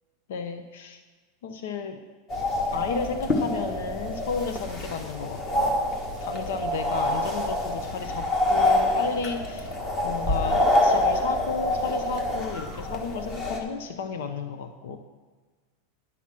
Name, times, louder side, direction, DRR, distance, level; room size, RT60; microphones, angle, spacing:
voice 1, 0.3-1.0 1.4-2.0 2.7-9.7 10.0-15.0, left 5 dB, 75° left, 8 dB, 0.8 m, -33 dB
sound 1, 2.3-13.6, left 1 dB, 25° left, 1.4 m, -26 dB
10.5 x 6.0 x 7.5 m, 1.3 s
supercardioid pair, 170°, 0 cm